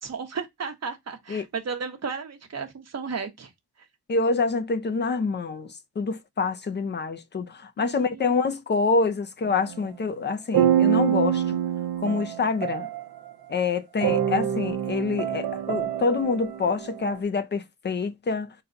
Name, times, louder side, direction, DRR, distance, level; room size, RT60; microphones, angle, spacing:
voice 1, 0.0-3.5 7.8-8.5, right 5 dB, 40° right, 1.0 m, -34 dB
voice 2, 4.1-11.6 12.0-12.9 13.5-18.5, left 4 dB, 25° left, 0.5 m, -26 dB
sound 1, 9.4-9.9 10.5-13.3 14.0-17.2, right 10 dB, 65° right, 0.8 m, -26 dB
5.7 x 2.3 x 3.8 m
wide cardioid pair, 160°, 41 cm